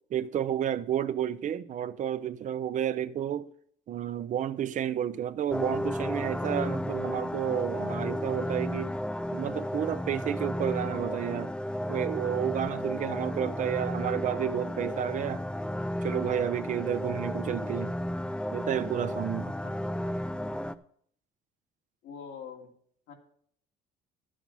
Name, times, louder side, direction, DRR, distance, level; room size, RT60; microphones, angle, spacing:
voice 1, 0.1-3.5 3.9-8.9 9.3-11.5 11.9-15.4 16.0-18.0 18.5-19.5, right 10 dB, 50° right, 0.6 m, -31 dB
sound 1, 5.5-20.7, left 1 dB, 5° left, 0.4 m, -33 dB
voice 2, 22.0-22.7 23.1-23.2, left 7 dB, 85° left, 2.3 m, -44 dB
11.0 x 7.6 x 5.4 m
cardioid pair, 110°, 17 cm